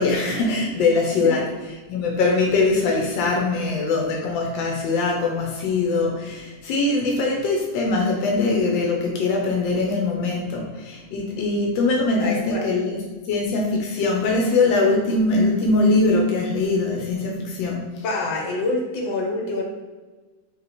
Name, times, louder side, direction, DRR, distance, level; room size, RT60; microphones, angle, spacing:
voice 1, 0.0-13.0 13.3-17.9, left 3 dB, 90° left, 0 dB, 1.4 m, -22 dB
voice 2, 12.2-12.6 18.0-19.6, left 2 dB, 75° left, 0 dB, 1.5 m, -26 dB
3.1 x 2.9 x 4.1 m, 1.3 s
omnidirectional pair, 2.0 m